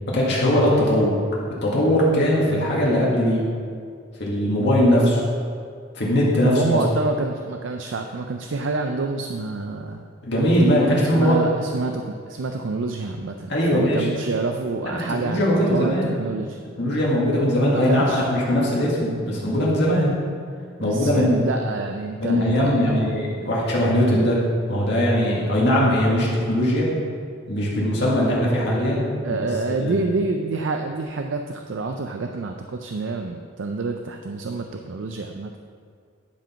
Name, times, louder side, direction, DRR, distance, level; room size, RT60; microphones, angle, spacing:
voice 1, 0.1-1.1 1.6-3.5 4.2-5.2 5.9-6.8 10.2-11.4 13.5-14.1 15.2-16.1 16.8-20.2 20.8-21.5 22.2-24.4 24.7-26.9 27.5-29.9, equal, 55° left, -5 dB, 1.9 m, -20 dB
voice 2, 6.4-10.0 11.0-16.6 17.9-18.3 20.8-23.0 29.2-35.5, right 3 dB, 65° right, 4 dB, 0.5 m, -28 dB
10.5 x 5.0 x 5.7 m, 2.2 s
head